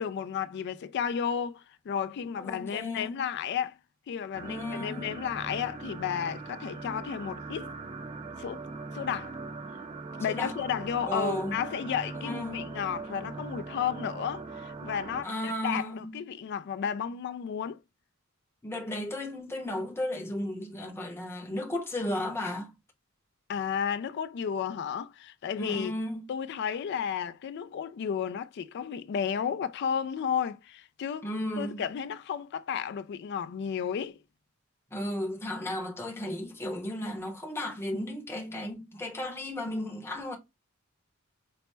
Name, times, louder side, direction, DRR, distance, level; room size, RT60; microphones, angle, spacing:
voice 1, 0.0-3.8 4.1-7.7 8.4-8.6 8.9-9.4 10.2-17.8 23.5-25.9 26.3-31.3 31.6-34.2, left 8 dB, 55° left, 0.3 m, -33 dB
voice 2, 2.4-3.2 4.5-5.1 10.3-10.6 11.0-11.6 12.1-12.7 15.2-16.2 18.6-22.7 25.6-26.3 31.2-31.8 34.9-40.4, left 1 dB, 10° left, 0.7 m, -34 dB
sound 1, 4.3-15.2, right 3 dB, 25° right, 0.4 m, -41 dB
4.1 x 2.0 x 3.2 m
head